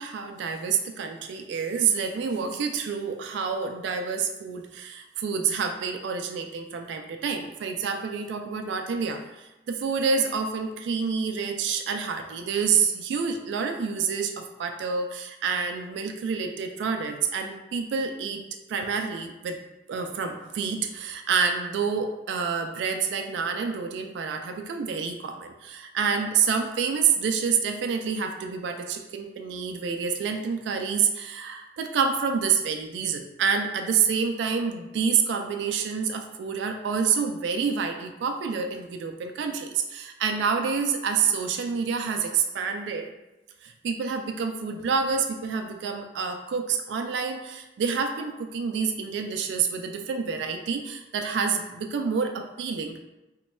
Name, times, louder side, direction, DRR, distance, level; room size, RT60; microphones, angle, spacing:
voice 1, 0.0-18.4 18.7-19.6 19.9-43.1 43.6-53.0, right 6 dB, 80° right, 5 dB, 0.3 m, -28 dB
3.1 x 2.2 x 4.1 m, 1.0 s
head